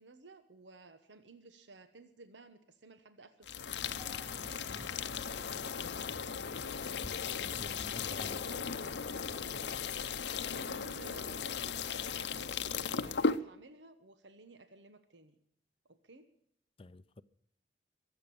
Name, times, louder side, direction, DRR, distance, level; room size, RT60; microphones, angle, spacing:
voice 1, 0.0-3.7 8.1-8.8 10.5-15.4 15.9-16.3, right 2 dB, 80° right, 1.1 m, -55 dB
sound 1, 3.4-13.4, left 6 dB, 70° left, 0.7 m, -37 dB
sound 2, 3.8-9.9, equal, 10° right, 4.3 m, -52 dB
voice 2, 7.0-8.4 16.8-17.2, left 2 dB, 30° left, 0.5 m, -50 dB
22.5 x 8.2 x 7.0 m
head